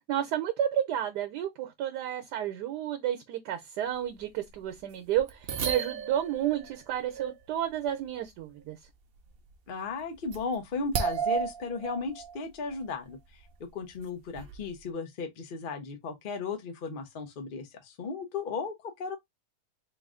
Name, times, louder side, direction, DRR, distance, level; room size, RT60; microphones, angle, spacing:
voice 1, 0.0-8.8, right 11 dB, 85° right, 1.3 m, -31 dB
sound 1, 4.2-4.3 4.5-4.6 5.2-7.4 7.8-8.0 9.3-9.5 10.0-10.5 10.9-12.4 12.7-12.8 13.4-13.5 14.4-14.7, right 7 dB, 65° right, 0.5 m, -33 dB
voice 2, 9.7-13.4 13.7-19.2, left 4 dB, 40° left, 0.8 m, -35 dB
3.8 x 2.4 x 3.6 m
omnidirectional pair, 1.7 m